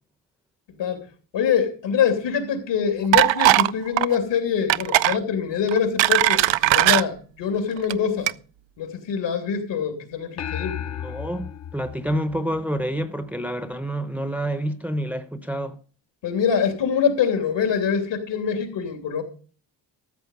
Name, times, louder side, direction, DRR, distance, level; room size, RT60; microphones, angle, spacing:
voice 1, 0.7-1.1 1.3-8.3 8.8-10.8 16.2-19.2, left 7 dB, 75° left, 3.1 m, -24 dB
sound 1, 3.1-3.7 4.0-4.2 4.7-5.2 5.7-7.0 7.8-7.9 8.3-8.4, right 16 dB, 85° right, 0.6 m, -18 dB
sound 2, 10.4-13.0, left 9 dB, 40° left, 0.7 m, -34 dB
voice 2, 10.7-15.8, equal, 5° right, 0.7 m, -28 dB
13.5 x 7.6 x 5.3 m
wide cardioid pair, 160°, 44 cm